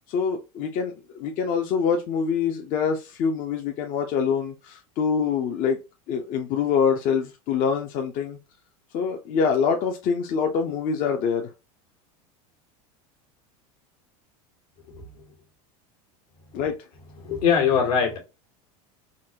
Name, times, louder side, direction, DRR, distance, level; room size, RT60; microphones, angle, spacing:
voice 1, 0.1-5.8 6.1-8.4 8.9-11.5 16.5-16.7, left 6 dB, 50° left, 0.6 m, -25 dB
voice 2, 14.9-15.2 17.2-18.2, left 7 dB, 75° left, 1.4 m, -22 dB
3.9 x 2.1 x 2.7 m
supercardioid pair, 105°, 18 cm